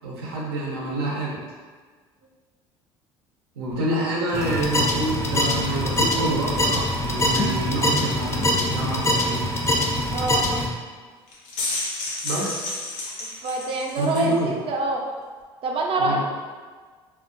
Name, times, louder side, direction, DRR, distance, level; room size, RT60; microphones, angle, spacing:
voice 1, 0.0-1.4 3.6-9.4 12.2-12.7 14.0-14.5 16.0-16.2, right 1 dB, 90° right, -4 dB, 0.6 m, -27 dB
sound 1, 4.3-10.7, left 1 dB, 20° left, 0.4 m, -23 dB
voice 2, 10.1-10.5 13.4-15.0 15.6-16.2, right 2 dB, 45° right, 1 dB, 0.5 m, -25 dB
sound 2, 11.3-14.3, left 2 dB, 70° left, 0.5 m, -31 dB
2.3 x 2.2 x 2.5 m, 1.5 s
hypercardioid pair, 70°, 13 cm